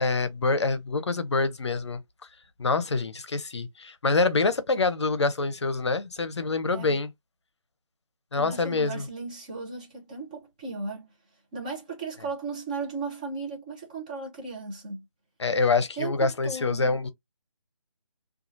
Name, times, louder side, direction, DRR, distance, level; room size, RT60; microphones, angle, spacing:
voice 1, 0.0-2.0 2.6-7.1 8.3-9.1 15.4-17.1, left 3 dB, 55° left, 0.6 m, -26 dB
voice 2, 8.4-11.1 11.5-15.0 16.0-16.1 16.4-17.0, right 4 dB, 15° right, 0.7 m, -36 dB
3.0 x 2.4 x 2.5 m
figure-of-eight pair, 165°, 17 cm